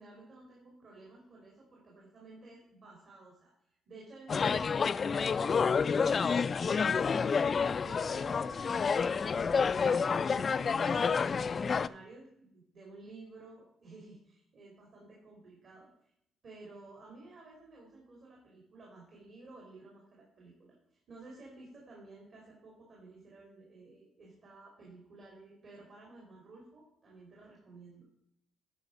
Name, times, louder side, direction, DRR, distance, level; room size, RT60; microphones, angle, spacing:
voice 1, 0.0-16.1 16.4-20.7 21.1-28.1, right 2 dB, 55° right, -3 dB, 3.2 m, -54 dB
sound 1, 4.3-11.9, left 5 dB, 45° left, 0.3 m, -29 dB
11.5 x 5.0 x 5.3 m, 0.74 s
cardioid pair, 90°, 0 cm